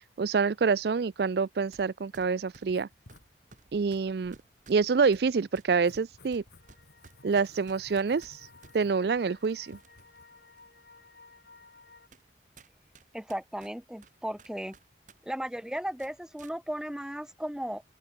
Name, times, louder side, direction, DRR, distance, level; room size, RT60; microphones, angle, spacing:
voice 1, 0.2-2.9 3.7-4.4 4.7-6.4 7.2-8.4 8.7-9.8, right 5 dB, 60° right, 0.4 m, -27 dB
sound 1, 1.7-1.9 2.1-8.8 9.4-10.2 10.6-10.7 11.4-11.5 12.1-12.3 12.6-15.2 15.4-15.6 16.0-16.6, right 4 dB, 45° right, 1.6 m, -56 dB
Writing, 2.7-10.2, left 2 dB, 75° left, 2.4 m, -59 dB
sound 2, 6.5-12.1, left 3 dB, 60° left, 7.4 m, -57 dB
voice 2, 13.1-14.8 15.2-17.8, equal, 5° right, 0.5 m, -35 dB
open air
head